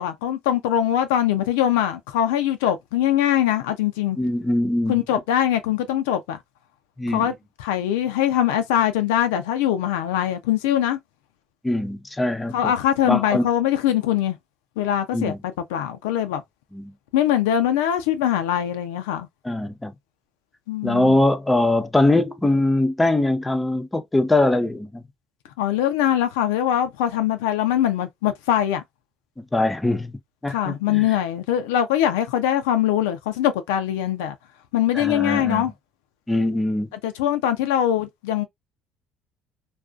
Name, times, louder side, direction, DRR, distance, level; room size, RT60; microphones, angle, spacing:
voice 1, 0.0-4.2 4.9-6.4 7.1-11.0 12.5-14.4 14.8-16.4 17.1-19.3 20.7-21.2 25.6-28.8 30.5-34.3 34.7-35.7 37.0-38.4, left 11 dB, 90° left, 0.4 m, -22 dB
voice 2, 4.2-5.0 7.0-7.3 11.6-12.7 13.0-13.5 15.1-15.4 16.7-16.9 19.4-19.9 20.8-25.0 29.4-31.1 34.9-35.6 36.3-36.9, left 2 dB, 15° left, 0.5 m, -22 dB
2.5 x 2.3 x 2.2 m
supercardioid pair, 75°, 0 cm